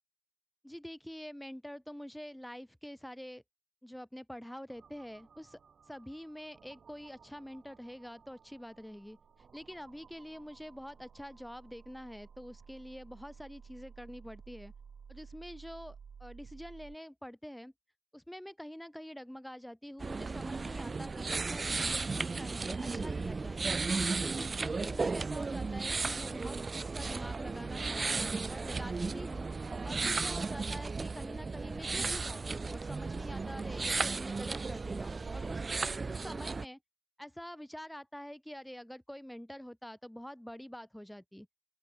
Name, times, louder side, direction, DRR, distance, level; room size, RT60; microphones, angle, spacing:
voice 1, 0.6-3.4 3.8-5.6 5.9-9.2 9.5-14.7 15.1-17.7 18.1-23.7 24.1-29.5 29.8-35.7 36.1-36.8 37.2-41.5, equal, 5° left, 1.2 m, -46 dB
sound 1, 4.7-17.0, right 6 dB, 45° right, 6.4 m, -55 dB
sound 2, 20.0-36.7, right 4 dB, 30° right, 0.3 m, -35 dB
open air
cardioid pair, 90°, 0 cm